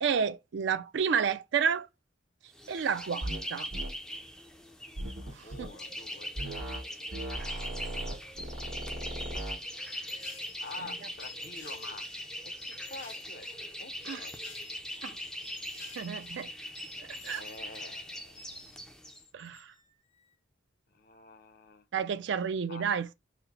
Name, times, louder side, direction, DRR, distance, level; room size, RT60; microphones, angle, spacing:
voice 1, 0.0-1.9 2.7-3.7 5.3-5.7 14.0-14.3 15.0-15.2 16.0-16.5 17.0-17.4 19.3-19.7 21.9-23.1, right 6 dB, 65° right, 0.4 m, -31 dB
sound 1, 2.5-19.2, equal, 5° left, 0.4 m, -41 dB
sound 2, 3.2-3.4 3.7-3.9 5.0-5.7 6.4-6.8 7.1-9.6, right 1 dB, 90° right, 1.2 m, -37 dB
voice 2, 5.2-6.6 7.5-7.7 10.6-12.0 12.4-14.3 15.7-15.8 17.2-18.6 20.9-21.8 22.7-22.9, left 3 dB, 50° left, 0.6 m, -48 dB
sound 3, 9.8-18.8 19.1-19.9, left 4 dB, 80° left, 1.8 m, -52 dB
4.0 x 2.0 x 4.1 m
head